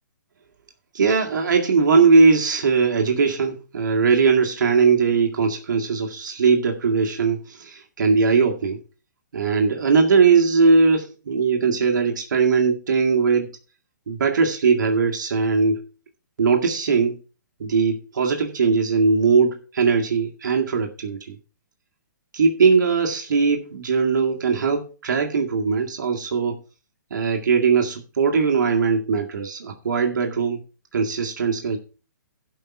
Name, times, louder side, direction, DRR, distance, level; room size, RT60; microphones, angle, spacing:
voice 1, 0.9-8.8 9.3-13.5 14.1-15.8 16.4-17.2 17.6-21.4 22.3-26.6 27.1-30.6 30.9-31.8, right 5 dB, 70° right, 2 dB, 1.9 m, -20 dB
12.5 x 5.5 x 5.8 m, 0.35 s
hypercardioid pair, 140°, 10 cm